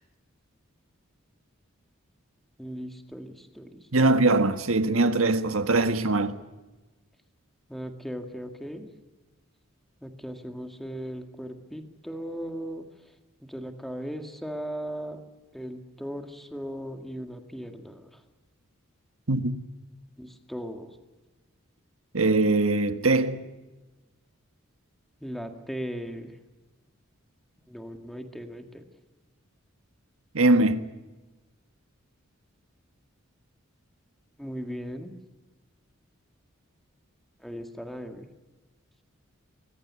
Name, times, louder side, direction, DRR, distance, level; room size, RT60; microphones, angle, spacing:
voice 1, 2.6-4.1 7.7-8.9 10.0-12.9 13.4-15.2 15.5-18.2 20.2-21.0 25.2-26.3 27.7-28.8 34.4-35.1 37.4-38.3, equal, ahead, 1.9 m, -37 dB
voice 2, 3.9-6.4 19.3-19.6 22.1-23.4 30.3-30.9, right 2 dB, 80° right, 1.5 m, -22 dB
24.0 x 21.5 x 9.7 m
head